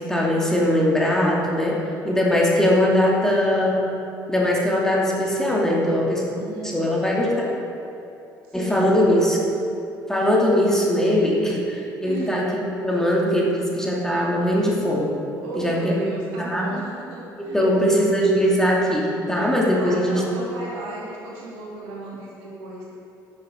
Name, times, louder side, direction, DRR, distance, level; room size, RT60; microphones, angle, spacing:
voice 1, 0.0-3.9 4.3-6.2 6.7-7.5 8.5-9.4 10.1-15.2 15.5-16.0 16.4-16.6 17.4-20.2, equal, 5° left, -3 dB, 2.8 m, -21 dB
voice 2, 6.3-6.9 8.4-9.3 12.0-12.5 15.4-17.6 19.8-22.9, right 2 dB, 70° right, -5 dB, 2.6 m, -34 dB
12.0 x 7.0 x 6.4 m, 2.8 s
figure-of-eight pair, 50°, 11 cm